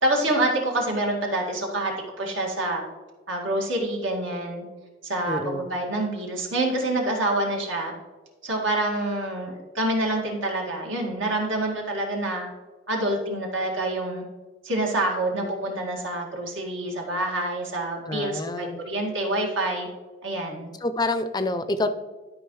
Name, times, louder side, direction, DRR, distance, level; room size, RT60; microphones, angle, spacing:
voice 1, 0.0-2.8 3.3-4.7 5.0-7.9 8.4-12.5 12.9-14.2 14.6-19.9 20.2-20.7, right 1 dB, 80° right, 0 dB, 2.0 m, -27 dB
voice 2, 5.3-5.7 18.1-18.8 20.8-21.9, left 2 dB, 20° left, 10 dB, 0.4 m, -27 dB
12.5 x 5.3 x 3.1 m, 1.3 s
head